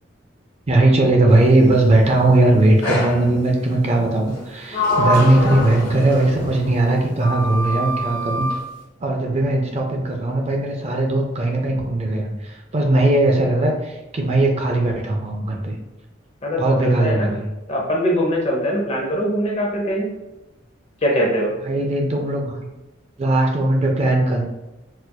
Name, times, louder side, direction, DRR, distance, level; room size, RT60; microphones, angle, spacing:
voice 1, 0.7-8.5 9.0-15.8 16.6-17.5 21.6-22.7 23.2-24.4, right 2 dB, 35° right, 1 dB, 0.4 m, -18 dB
Sliding door, 2.8-3.3 4.3-6.7 7.2-8.6, equal, 50° left, 1.4 m, -24 dB
voice 2, 5.0-5.3 16.4-17.3 17.7-20.1 21.0-21.5, equal, 35° left, -2 dB, 0.7 m, -22 dB
4.1 x 2.5 x 2.2 m, 1.0 s
head